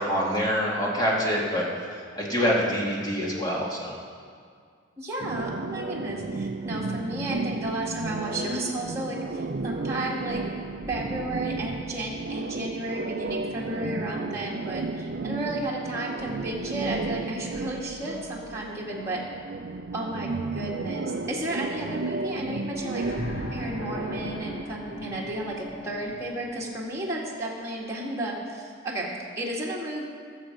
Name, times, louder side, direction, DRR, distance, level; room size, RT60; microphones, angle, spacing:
voice 1, 0.0-3.9, equal, 20° left, -4 dB, 2.3 m, -26 dB
voice 2, 5.0-10.4 10.9-19.2 19.9-23.0 23.5-30.0, right 1 dB, 15° right, -5 dB, 1.9 m, -33 dB
sound 1, 5.2-24.6, right 3 dB, 55° right, 0.5 m, -33 dB
sound 2, 22.8-26.7 27.9-28.0, left 1 dB, 85° left, 2.7 m, -38 dB
19.0 x 7.2 x 5.2 m, 2.1 s
head